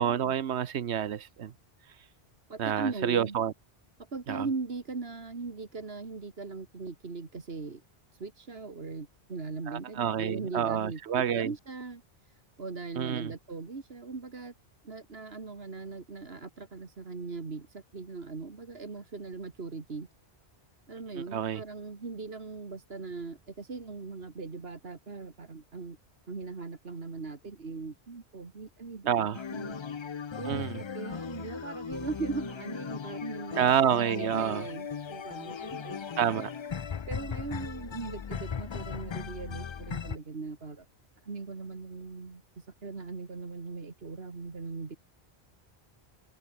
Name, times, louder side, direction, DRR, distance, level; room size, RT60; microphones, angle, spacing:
voice 1, 0.0-1.5 2.6-3.5 4.3-4.5 9.7-11.5 13.0-13.3 21.3-21.6 29.1-29.4 30.5-30.8 33.5-34.7 36.2-36.5, right 9 dB, 85° right, 1.2 m, -28 dB
voice 2, 2.5-3.4 4.1-7.8 8.2-14.5 14.8-20.1 20.9-26.0 26.3-29.8 30.4-30.7 30.9-33.8 34.1-36.1 37.1-40.9 41.2-45.0, right 4 dB, 65° right, 2.3 m, -39 dB
sound 1, 29.3-40.2, left 7 dB, 45° left, 0.3 m, -38 dB
omnidirectional pair, 1.1 m